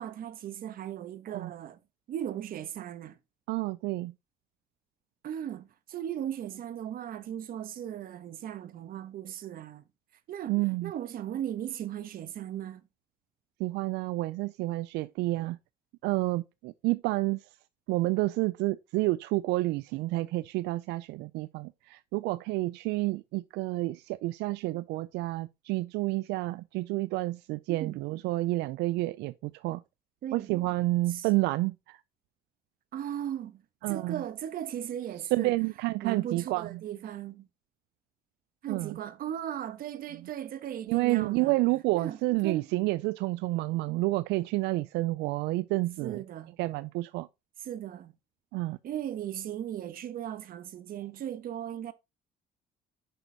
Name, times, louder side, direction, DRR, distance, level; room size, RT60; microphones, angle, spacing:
voice 1, 0.0-1.8 2.1-3.2 5.2-9.8 10.3-12.8 27.7-28.0 30.2-30.5 31.1-31.3 32.9-33.6 33.9-35.5 36.0-37.5 38.6-41.5 41.9-42.7 46.0-46.5 47.6-48.1 48.8-51.9, right 10 dB, 60° right, 1.1 m, -37 dB
voice 2, 3.5-4.1 10.5-10.9 13.6-15.6 16.0-17.5 17.9-29.8 30.3-32.0 33.8-34.2 35.3-36.8 38.7-39.0 40.9-46.2 46.6-47.3 48.5-48.8, right 20 dB, 85° right, 0.4 m, -29 dB
6.7 x 6.1 x 3.9 m
cardioid pair, 110°, 17 cm